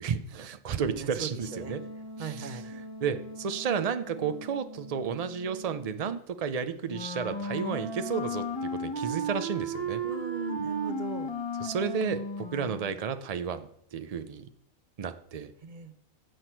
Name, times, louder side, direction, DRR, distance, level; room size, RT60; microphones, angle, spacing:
voice 1, 0.0-1.8 2.2-8.5 8.8-10.0 11.6-14.5 15.0-15.5, right 6 dB, 80° right, 0.3 m, -32 dB
voice 2, 0.8-1.7 2.2-2.6 10.0-11.3 15.6-15.9, right 5 dB, 40° right, 0.8 m, -38 dB
Wind instrument woodwind instrument, 1.4-6.2, equal, 70° left, 1.6 m, -44 dB
Wind instrument woodwind instrument 2, 6.8-13.1, right 1 dB, 20° left, 1.3 m, -34 dB
16.0 x 6.1 x 4.5 m
omnidirectional pair, 1.4 m